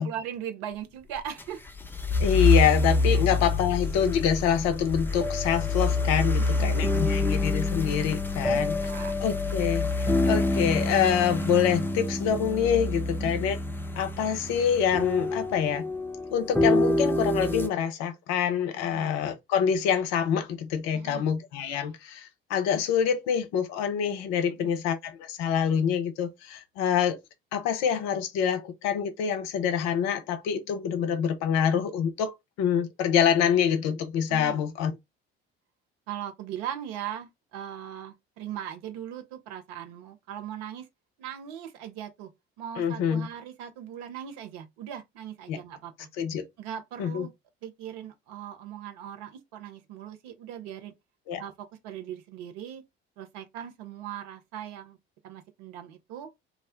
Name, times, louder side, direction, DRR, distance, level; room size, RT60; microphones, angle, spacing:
voice 1, 0.0-1.6 3.1-3.2 6.6-7.2 8.5-9.1 13.2-13.3 18.8-19.1 20.9-21.3 24.5-24.8 34.3-34.6 36.1-40.9 41.2-42.3 42.6-46.1 46.6-47.3 47.6-50.9 51.4-52.8 53.2-55.0 55.2-56.3, right 10 dB, 60° right, 0.6 m, -39 dB
sound 1, 1.2-17.7, left 2 dB, 5° left, 0.5 m, -27 dB
voice 2, 2.2-8.8 9.2-13.6 14.0-15.9 16.3-27.2 27.5-34.9 42.8-43.3 45.5-45.6 46.2-46.5 47.0-47.3 51.3-51.4, left 8 dB, 55° left, 0.6 m, -26 dB
2.4 x 2.1 x 3.5 m
figure-of-eight pair, 55°, 31 cm